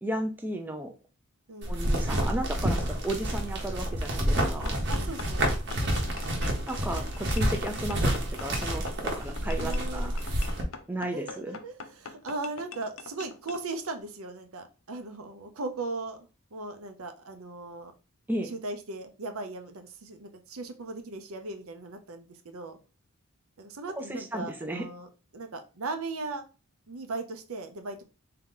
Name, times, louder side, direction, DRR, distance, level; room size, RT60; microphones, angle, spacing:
voice 1, 0.0-0.9 1.7-4.8 6.7-10.2 10.9-11.6 18.3-18.5 23.9-24.9, right 1 dB, 10° right, 4 dB, 0.4 m, -34 dB
sound 1, 1.6-10.6, right 1 dB, 55° right, 1.0 m, -29 dB
sound 2, 4.4-13.6, left 5 dB, 65° left, 0.5 m, -43 dB
voice 2, 4.9-5.5 9.6-10.1 11.1-17.9 18.4-22.8 23.6-25.1 25.3-26.4 26.9-28.0, right 3 dB, 75° right, 6 dB, 0.7 m, -38 dB
3.6 x 2.8 x 3.7 m, 0.32 s
head